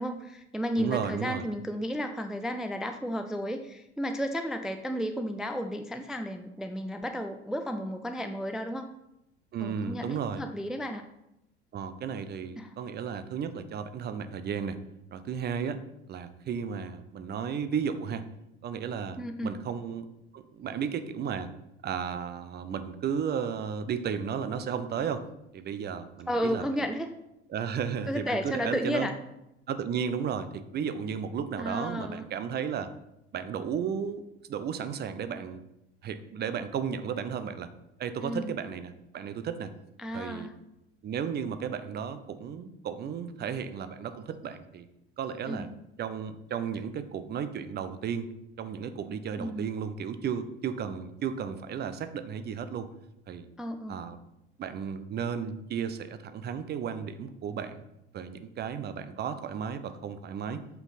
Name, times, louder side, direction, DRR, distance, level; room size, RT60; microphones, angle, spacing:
voice 1, 0.0-8.9 9.6-11.0 12.6-12.7 19.2-19.5 26.3-27.1 28.1-29.2 31.6-32.3 38.2-38.6 40.0-40.5 45.5-45.6 49.4-49.7 53.6-54.0, equal, ahead, 7 dB, 0.4 m, -33 dB
voice 2, 0.8-1.4 9.5-10.4 11.7-14.8 15.1-15.8 16.1-18.3 18.6-20.1 20.3-21.5 21.8-25.2 25.5-26.6 27.5-29.1 29.7-32.9 33.3-34.2 34.5-35.6 36.0-37.7 38.0-39.7 40.1-40.5 41.0-44.9 45.2-45.7 46.0-48.3 48.6-52.9 53.3-53.5 53.9-54.2 54.6-57.8 58.1-60.6, right 7 dB, 30° right, 11 dB, 0.7 m, -34 dB
7.9 x 5.9 x 4.1 m, 0.88 s
figure-of-eight pair, 75°, 33 cm